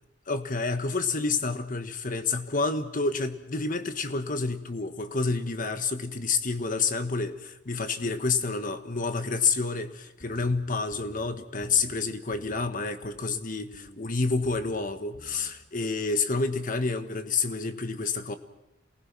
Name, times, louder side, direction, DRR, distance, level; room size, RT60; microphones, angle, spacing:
voice 1, 0.3-13.7 14.0-18.3, left 4 dB, 45° left, 1.4 m, -29 dB
sound 1, 10.2-10.6 10.9-11.3 11.6-12.0 12.3-12.7 13.0-13.4 13.7-14.1 14.4-14.8 15.1-15.5, right 1 dB, 65° left, 2.7 m, -50 dB
28.0 x 19.5 x 6.1 m
head